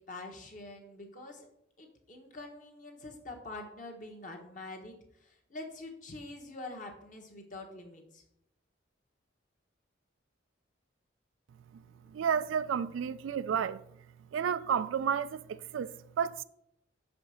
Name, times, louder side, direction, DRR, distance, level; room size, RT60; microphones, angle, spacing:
voice 1, 0.0-1.5 1.8-8.2 11.8-12.2, left 2 dB, 40° left, 1.2 m, -46 dB
voice 2, 12.1-13.8 14.3-16.4, right 7 dB, 85° right, 0.3 m, -31 dB
5.9 x 5.0 x 6.2 m
head